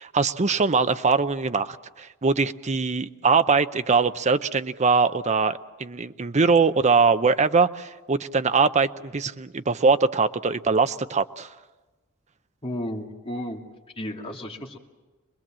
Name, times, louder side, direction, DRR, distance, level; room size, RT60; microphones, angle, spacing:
voice 1, 0.0-11.5, right 4 dB, 35° right, 11 dB, 0.7 m, -22 dB
voice 2, 12.6-13.6 14.0-14.8, left 1 dB, 25° left, 0 dB, 2.5 m, -33 dB
25.0 x 21.0 x 7.5 m, 1.2 s
head